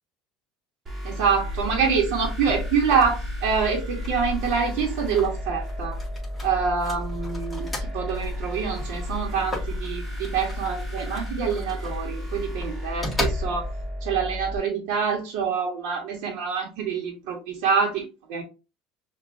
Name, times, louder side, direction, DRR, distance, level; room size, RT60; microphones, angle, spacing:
sound 1, 0.9-14.6, equal, 25° right, 1.5 m, -34 dB
voice 1, 1.0-6.0 6.4-7.7 7.9-13.7 14.0-18.4, right 6 dB, 75° right, -2 dB, 1.2 m, -26 dB
sound 2, 1.3-13.9, left 2 dB, 5° left, 2.0 m, -35 dB
6.3 x 2.6 x 2.6 m, 0.28 s
cardioid pair, 130°, 0 cm